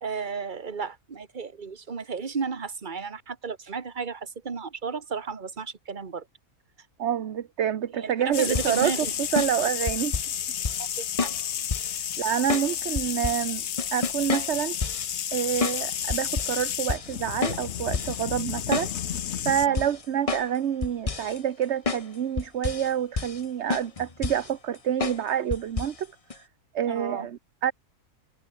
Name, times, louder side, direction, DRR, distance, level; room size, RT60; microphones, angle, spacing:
voice 1, 0.0-6.2 8.0-9.1 10.8-11.3 19.7-19.9 26.9-27.3, right 5 dB, 35° right, 1.5 m, -33 dB
voice 2, 7.0-8.9 9.3-10.2 12.2-13.6 13.9-14.8 15.3-18.9 19.4-26.1 26.3-26.5 26.7-27.7, right 9 dB, 50° right, 1.1 m, -27 dB
sound 1, 8.3-19.7, left 9 dB, 55° left, 1.0 m, -31 dB
sound 2, 8.5-10.4 10.6-10.9 11.2-12.0 12.5-13.5 13.8-15.1 15.6-15.8 16.1-16.6 16.9-17.2 17.4-18.2 18.5-19.3 19.8-20.6 20.8-21.4 21.9-22.1 22.4-22.9 23.2-23.4 23.7-24.5 25.0-25.2 25.5-26.0 26.3-26.4, left 4 dB, 25° left, 1.0 m, -30 dB
omnidirectional pair, 1.6 m